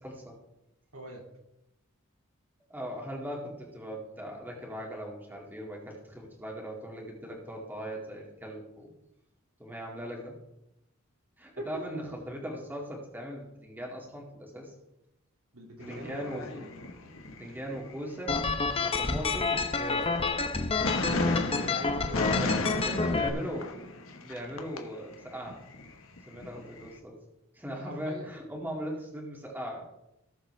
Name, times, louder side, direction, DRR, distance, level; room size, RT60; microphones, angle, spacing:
voice 1, 0.0-0.4 2.7-8.9 9.6-10.4 11.4-14.7 15.9-16.7 17.4-18.4 18.8-20.2 22.4-22.5 22.8-23.8 24.1-25.6 26.3-27.2 27.5-29.9, equal, 10° right, -1 dB, 2.1 m, -39 dB
voice 2, 0.9-1.2 11.6-12.0 15.5-16.4 21.5-22.6 27.7-28.3, right 1 dB, 80° right, 0 dB, 2.6 m, -42 dB
sound 1, 15.8-17.9 18.2-20.6 20.8-24.8 25.1-26.9, left 2 dB, 70° left, 1.3 m, -35 dB
sound 2, 18.3-23.3, left 4 dB, 25° left, 0.7 m, -29 dB
18.0 x 7.2 x 3.3 m, 0.87 s
head